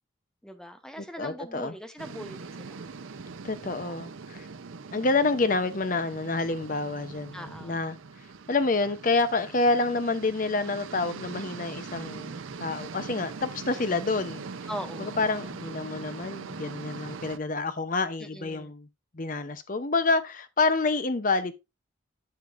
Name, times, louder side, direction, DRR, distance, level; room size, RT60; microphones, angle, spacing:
voice 1, 0.4-2.9 3.8-4.0 7.3-7.8 13.7-14.1 14.7-15.2 18.2-18.7, equal, 5° left, 0.8 m, -41 dB
voice 2, 1.0-1.7 3.4-4.5 4.9-8.0 8.5-14.4 15.0-18.9 19.1-21.5, left 3 dB, 45° left, 0.7 m, -28 dB
sound 1, 2.0-17.4, right 4 dB, 90° right, 0.6 m, -41 dB
9.6 x 6.7 x 2.5 m
head